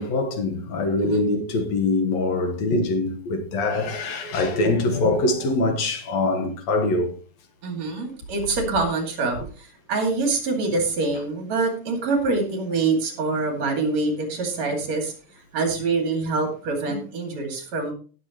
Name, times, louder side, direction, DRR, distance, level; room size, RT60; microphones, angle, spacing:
voice 1, 0.0-7.1, left 2 dB, 70° left, 2.5 m, -23 dB
voice 2, 7.6-15.1 15.5-17.9, right 3 dB, 65° right, 3.6 m, -25 dB
17.5 x 7.1 x 3.0 m
omnidirectional pair, 3.3 m